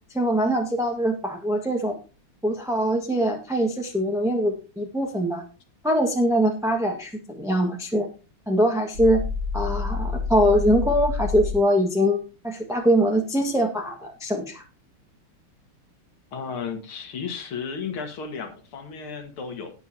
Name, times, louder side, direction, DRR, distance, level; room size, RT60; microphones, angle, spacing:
voice 1, 0.1-2.0 2.4-5.4 5.8-8.1 8.5-9.2 9.5-12.2 12.4-14.6, equal, ahead, 2 dB, 1.2 m, -23 dB
sound 1, 8.9-11.6, left 4 dB, 90° right, 4.6 m, -28 dB
voice 2, 16.3-19.7, left 6 dB, 80° left, 6 dB, 2.6 m, -34 dB
18.5 x 6.9 x 2.8 m, 0.33 s
omnidirectional pair, 2.4 m